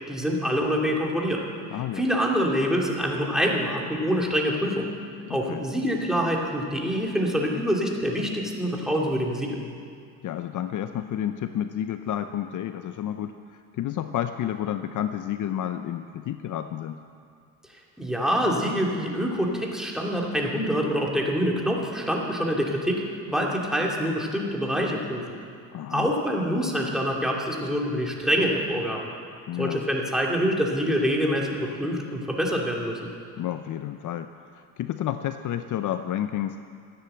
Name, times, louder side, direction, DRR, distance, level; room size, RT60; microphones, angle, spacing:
voice 1, 0.1-1.5 1.9-4.9 5.3-9.6 18.0-25.4 25.9-29.0 29.6-33.0, equal, ahead, -2 dB, 2.7 m, -25 dB
voice 2, 1.7-2.1 5.3-5.7 10.2-17.0 25.7-26.1 29.5-29.9 33.4-36.6, left 11 dB, 55° left, 10 dB, 0.6 m, -30 dB
15.0 x 10.0 x 7.8 m, 2.3 s
cardioid pair, 95°, 38 cm